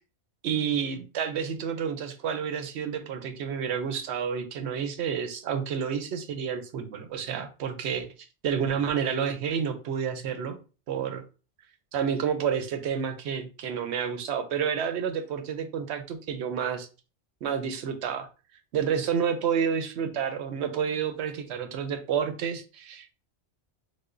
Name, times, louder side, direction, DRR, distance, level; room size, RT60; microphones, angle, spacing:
voice 1, 0.4-8.1 8.4-10.6 10.9-11.2 11.9-16.9 17.4-18.3 18.7-23.1, right 7 dB, 70° right, 0.9 m, -29 dB
4.8 x 2.2 x 2.5 m
omnidirectional pair, 1.2 m